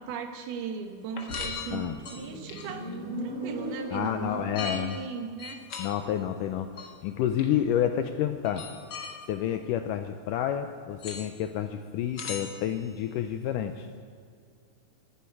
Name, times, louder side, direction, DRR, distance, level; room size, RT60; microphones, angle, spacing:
voice 1, 0.0-2.9 3.2-5.6, right 6 dB, 90° right, 6 dB, 3.2 m, -37 dB
sound 1, 1.1-2.9 4.5-5.0 5.4-5.9 6.8-6.9 7.4-7.5 8.4-9.1 11.0-11.3 12.1-12.9, left 5 dB, 70° left, 1.0 m, -38 dB
Motorcycle, 1.5-4.8, equal, 20° right, 4.3 m, -39 dB
voice 2, 3.9-5.0 5.8-6.7 7.0-8.6 9.3-13.9, left 10 dB, 85° left, 8 dB, 1.9 m, -29 dB
12.0 x 10.0 x 9.4 m, 2.2 s
omnidirectional pair, 4.3 m